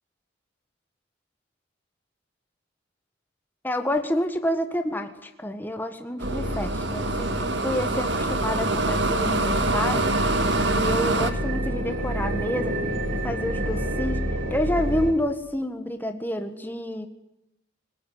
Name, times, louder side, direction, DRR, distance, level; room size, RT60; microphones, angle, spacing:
voice 1, 3.6-10.2 10.6-12.7 13.1-14.2 14.5-17.1, left 1 dB, 10° left, 7 dB, 1.5 m, -28 dB
sound 1, 6.2-11.3, right 2 dB, 60° right, 1.9 m, -25 dB
sound 2, 6.2-15.1, equal, 80° right, 4.1 m, -29 dB
22.5 x 20.0 x 9.4 m, 0.82 s
head